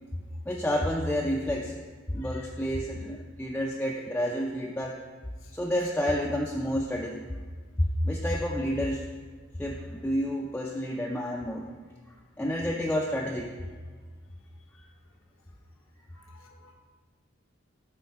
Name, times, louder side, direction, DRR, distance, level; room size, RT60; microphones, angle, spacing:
voice 1, 0.5-1.7 2.1-5.0 5.5-7.2 7.8-9.1 9.6-11.7 12.4-13.5, equal, 10° left, -1 dB, 0.3 m, -29 dB
voice 2, 16.2-16.7, left 3 dB, 80° left, 3 dB, 0.9 m, -54 dB
7.9 x 3.7 x 4.6 m, 1.5 s
head